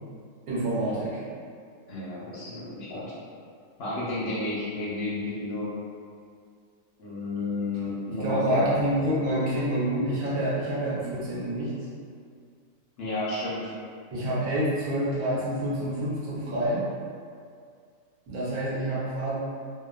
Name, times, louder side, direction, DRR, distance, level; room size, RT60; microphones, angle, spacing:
voice 1, 0.5-1.2 8.1-11.7 14.1-16.8 18.3-19.4, right 1 dB, 80° right, -8 dB, 1.2 m, -27 dB
voice 2, 1.9-3.1 3.8-5.8 7.0-8.7 13.0-13.7, left 2 dB, 65° left, -7 dB, 0.6 m, -31 dB
2.7 x 2.1 x 2.3 m, 2.2 s
omnidirectional pair, 1.5 m